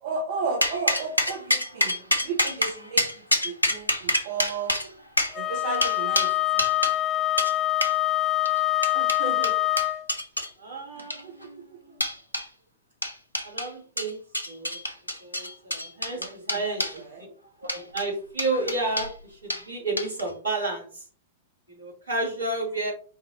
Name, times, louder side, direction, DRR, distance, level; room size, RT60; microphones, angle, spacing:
voice 1, 0.0-2.0 2.2-3.0 3.4-4.7 5.3-6.7 10.9-11.5 16.2-16.6 16.9-17.3, right 4 dB, 55° right, 2 dB, 0.8 m, -34 dB
sound 1, 0.6-7.0 7.4-7.5 7.8-8.0 8.5-10.5 11.0-11.4 12.0-12.5 13.0-13.7 14.0-17.0 17.6-18.1 18.4-19.1 19.5-19.6 20.0-20.3, left 1 dB, 90° left, 0.7 m, -27 dB
Wind instrument woodwind instrument, 5.3-10.1, left 15 dB, 20° left, 0.3 m, -25 dB
voice 2, 8.9-9.5 10.6-12.0 13.4-14.2 14.5-14.8 15.2-16.9 17.7-21.0 21.7-22.9, right 2 dB, 75° right, -1 dB, 2.0 m, -31 dB
4.6 x 2.5 x 4.2 m, 0.42 s
figure-of-eight pair, 100°, 0 cm